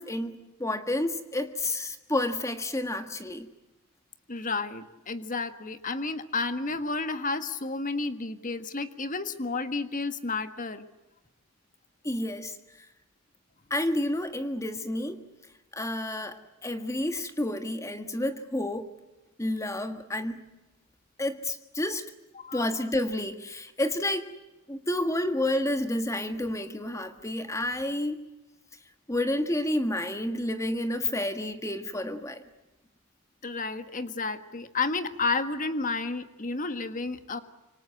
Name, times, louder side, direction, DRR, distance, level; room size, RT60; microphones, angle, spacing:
voice 1, 0.0-3.5 12.0-12.6 13.7-15.3 15.7-18.9 19.4-20.4 21.2-22.1 22.5-24.3 24.7-28.2 29.1-32.4, left 1 dB, 15° left, 8 dB, 1.6 m, -30 dB
voice 2, 4.3-10.8 22.4-22.7 33.4-37.4, left 3 dB, 40° left, 10 dB, 1.6 m, -31 dB
26.5 x 24.5 x 7.9 m, 1.0 s
head